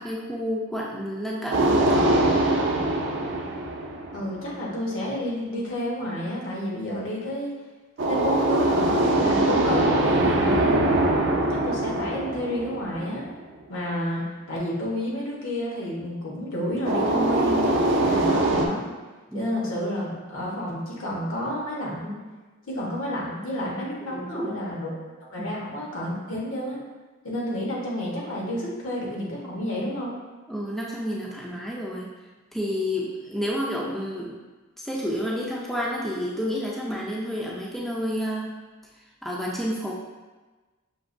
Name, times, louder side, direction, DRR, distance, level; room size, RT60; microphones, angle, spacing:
voice 1, 0.0-2.2 10.4-10.8 19.3-19.5 24.1-24.6 25.4-25.5 30.5-32.1 32.5-34.4 34.8-38.5 39.2-39.9, equal, ahead, -4 dB, 0.3 m, -30 dB
sound 1, 1.5-4.6 8.0-13.4 16.8-18.7, right 1 dB, 60° right, 0.4 m, -22 dB
voice 2, 4.1-7.5 8.1-10.8 11.5-13.3 13.7-18.9 19.3-22.2 22.6-26.8 27.2-30.1, left 1 dB, 80° left, -4 dB, 1.1 m, -30 dB
5.8 x 2.9 x 2.6 m, 1.2 s
head